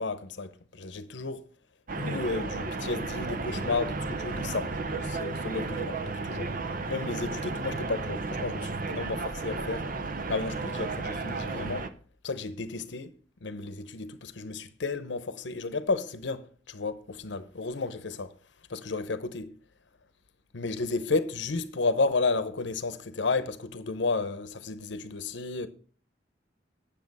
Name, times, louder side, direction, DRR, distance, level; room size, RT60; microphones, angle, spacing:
voice 1, 0.0-1.5 2.0-6.5 6.9-9.9 10.3-11.9 12.2-13.1 13.4-18.3 18.7-19.5 20.5-25.7, left 3 dB, 75° left, 0.8 m, -32 dB
sound 1, 1.9-11.9, right 3 dB, 50° right, 0.8 m, -33 dB
9.6 x 6.9 x 5.4 m
head